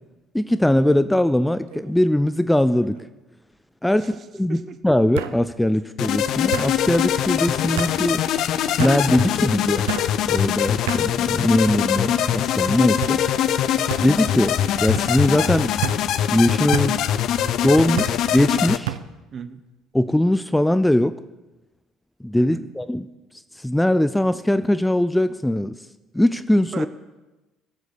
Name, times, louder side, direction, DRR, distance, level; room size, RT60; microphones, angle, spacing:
voice 1, 0.3-3.0 3.8-8.2 8.8-9.9 10.3-13.2 14.0-15.7 16.3-17.0 17.6-19.0 19.9-21.2 22.2-23.1 23.6-25.7 26.1-26.9, left 1 dB, 5° left, 13 dB, 0.6 m, -20 dB
sound 1, 1.7-2.1 2.5-3.0 4.1-4.2 5.2-5.4 6.5-6.7 7.8-8.0 8.8-9.0 9.9-10.1 10.9-11.1 11.8-12.2 13.0-13.2 13.9-14.1 14.9-15.1 15.8-16.0 16.7-16.9 18.0-18.2 18.9-19.1, right 12 dB, 80° right, 0.6 m, -29 dB
sound 2, 6.0-18.8, left 10 dB, 60° left, 0.6 m, -22 dB
voice 2, 19.3-19.6 22.4-22.7 26.7-26.9, right 6 dB, 45° right, 12 dB, 1.1 m, -35 dB
18.0 x 7.9 x 7.0 m, 1.1 s
hypercardioid pair, 60°, 0 cm